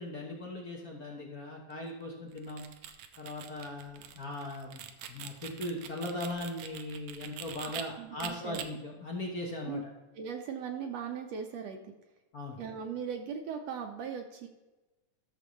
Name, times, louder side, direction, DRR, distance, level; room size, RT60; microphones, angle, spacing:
voice 1, 0.0-2.6 3.2-9.8 12.3-12.6, left 1 dB, 55° left, -1 dB, 0.9 m, -39 dB
sound 1, 2.3-7.8 8.2-8.7, right 10 dB, 90° right, 2.2 m, -44 dB
voice 2, 7.6-8.6 9.7-9.8 10.1-11.9 12.6-14.5, right 7 dB, 70° right, 4 dB, 1.7 m, -39 dB
13.5 x 6.8 x 3.1 m, 1.1 s
omnidirectional pair, 3.4 m